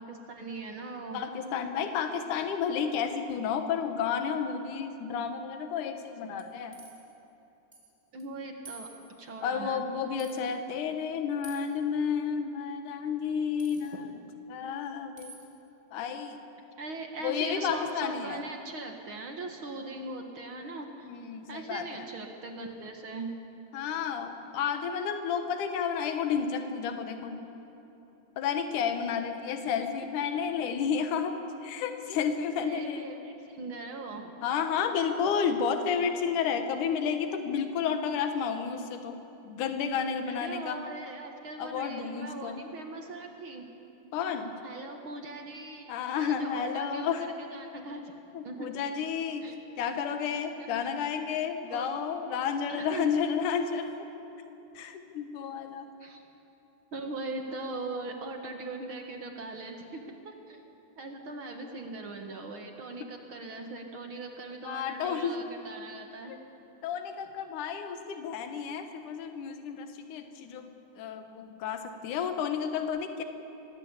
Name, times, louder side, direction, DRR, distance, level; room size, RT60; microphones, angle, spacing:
voice 1, 0.0-1.3 8.1-8.9 9.2-9.8 13.9-14.1 16.8-21.1 21.5-23.3 29.6-29.9 32.6-34.3 40.3-43.7 44.6-45.9 46.1-48.1 48.4-48.7 49.4-49.6 50.6-50.7 51.7-52.0 52.7-53.1 56.0-56.2 56.9-60.6 61.0-66.3, right 2 dB, 50° right, 3 dB, 1.9 m, -40 dB
voice 2, 1.1-6.7 9.4-14.1 14.5-15.3 15.9-16.4 17.2-18.4 21.0-22.1 23.7-27.4 28.4-31.4 31.6-33.1 34.4-39.1 39.4-40.8 41.6-42.6 44.1-44.5 45.9-47.2 48.3-53.9 54.7-55.9 64.6-65.4 66.3-66.4 66.8-70.7 71.0-73.2, left 7 dB, 70° left, 6 dB, 2.8 m, -31 dB
sound 1, 6.4-7.1 7.7-7.9 8.2-8.3 8.7-9.3 10.2-10.4 11.4-11.8 13.6-14.0 15.2-15.5, right 3 dB, 10° right, 2.9 m, -49 dB
24.0 x 18.5 x 8.2 m, 2.9 s
omnidirectional pair, 3.8 m